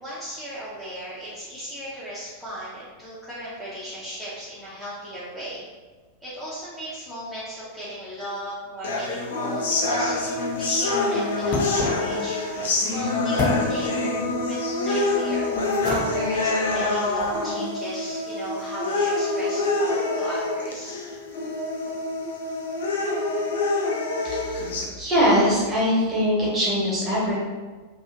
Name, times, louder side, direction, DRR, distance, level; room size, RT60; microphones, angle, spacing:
voice 1, 0.0-5.6 6.2-14.0 14.4-21.0, right 1 dB, ahead, -11 dB, 0.7 m, -36 dB
sound 1, 8.8-24.8, left 2 dB, 65° left, 0.4 m, -26 dB
sound 2, 9.7-17.4, left 2 dB, 35° left, 0.7 m, -35 dB
voice 2, 24.3-24.6 25.0-27.4, equal, 25° right, -6 dB, 1.2 m, -22 dB
2.8 x 2.4 x 2.5 m, 1.4 s
figure-of-eight pair, 90°, 0 cm